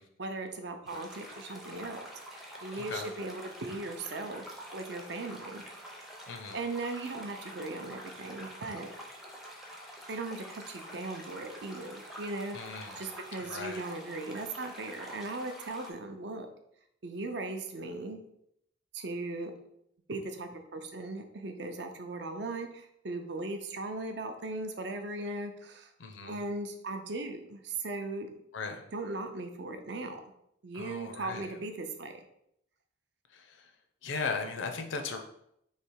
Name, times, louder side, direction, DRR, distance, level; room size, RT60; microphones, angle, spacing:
voice 1, 0.2-2.0 2.6-4.4 4.7-5.6 6.5-8.9 10.1-16.5 17.0-18.2 18.9-19.5 20.1-25.9 26.3-28.4 28.9-30.2 30.6-32.2, right 2 dB, 60° right, 6 dB, 0.5 m, -38 dB
sound 1, 0.9-15.9, equal, ahead, 0.5 m, -47 dB
voice 2, 6.3-6.6 12.5-13.0 13.4-13.9 26.0-26.4 28.5-28.8 30.7-31.5 33.3-33.7 34.0-35.2, left 4 dB, 80° left, 5 dB, 0.6 m, -37 dB
3.3 x 2.8 x 4.5 m, 0.75 s
head